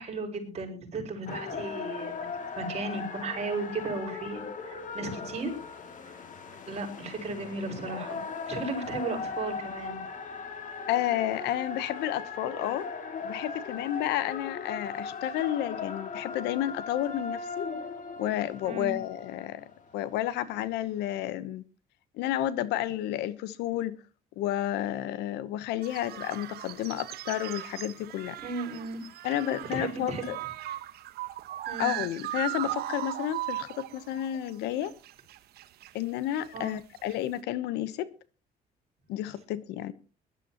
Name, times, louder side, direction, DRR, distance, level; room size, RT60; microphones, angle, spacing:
voice 1, 0.0-2.3 2.6-5.5 6.7-10.0 18.6-19.0 28.4-29.4 29.7-30.3 31.7-32.0 36.5-36.7, right 3 dB, 40° right, 5.6 m, -35 dB
sound 1, 1.3-20.1 20.8-20.9, left 5 dB, 50° left, 2.5 m, -38 dB
voice 2, 10.9-12.9 13.2-17.7 18.2-21.6 22.1-24.0 24.4-28.4 29.2-30.4 31.8-34.9 35.9-38.1 39.1-39.9, left 12 dB, 90° left, 1.0 m, -31 dB
sound 2, 25.8-34.5 34.8-35.9 36.3-36.7 37.0-37.3, right 14 dB, 70° right, 1.0 m, -38 dB
21.5 x 12.5 x 2.9 m
cardioid pair, 110°, 17 cm